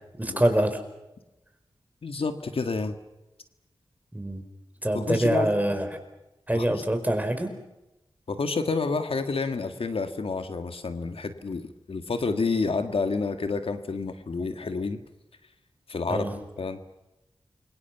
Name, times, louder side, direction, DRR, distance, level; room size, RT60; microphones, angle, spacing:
voice 1, 0.2-0.8 4.1-4.4 4.8-5.9 6.5-7.5 16.1-16.3, right 1 dB, 15° right, 6 dB, 4.8 m, -25 dB
voice 2, 2.0-2.9 4.9-5.5 6.5-6.8 8.3-15.0 15.9-16.3 16.6-16.8, left 4 dB, 75° left, 7 dB, 1.8 m, -29 dB
28.5 x 24.0 x 6.0 m, 0.96 s
wide cardioid pair, 65°, 10 cm